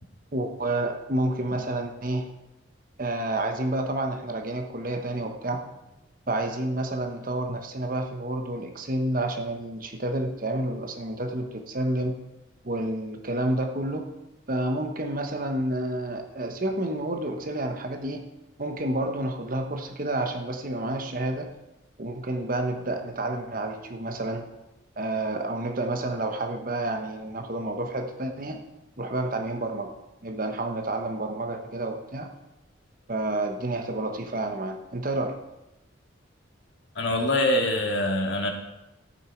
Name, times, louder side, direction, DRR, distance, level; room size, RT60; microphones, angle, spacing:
voice 1, 0.3-2.3 3.0-5.6 6.3-12.2 12.6-14.1 14.5-18.3 18.6-21.5 22.0-24.5 25.0-28.6 29.0-29.9 30.2-32.3 33.1-35.4, right 1 dB, 45° right, 5 dB, 1.2 m, -29 dB
voice 2, 37.0-38.5, left 1 dB, 65° left, 2 dB, 2.0 m, -24 dB
13.0 x 9.0 x 4.6 m, 0.95 s
head